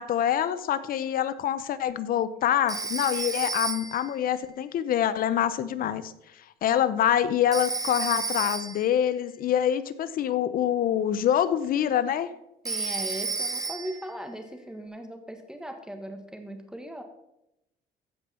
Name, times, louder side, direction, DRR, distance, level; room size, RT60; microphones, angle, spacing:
voice 1, 0.0-6.1 6.6-12.3, left 10 dB, 60° left, 14 dB, 0.8 m, -25 dB
Telephone, 2.7-4.1 7.5-8.9 12.7-14.1, right 4 dB, 20° right, 1.0 m, -31 dB
voice 2, 12.6-17.0, right 1 dB, 5° right, 5 dB, 1.6 m, -38 dB
15.5 x 5.4 x 4.4 m, 0.85 s
cardioid pair, 110°, 17 cm